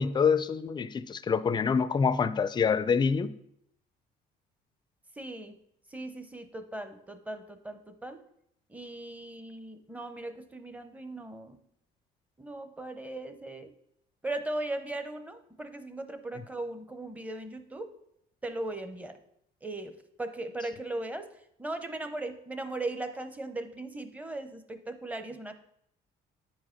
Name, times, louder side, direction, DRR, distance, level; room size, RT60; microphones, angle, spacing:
voice 1, 0.0-3.3, left 6 dB, 25° left, 0.4 m, -26 dB
voice 2, 5.2-5.5 5.9-8.2 8.7-11.6 12.4-13.7 14.2-17.9 18.4-19.2 19.6-21.3 21.6-25.5, right 2 dB, 10° right, 0.7 m, -38 dB
9.1 x 4.7 x 4.4 m
cardioid pair, 110°, 17 cm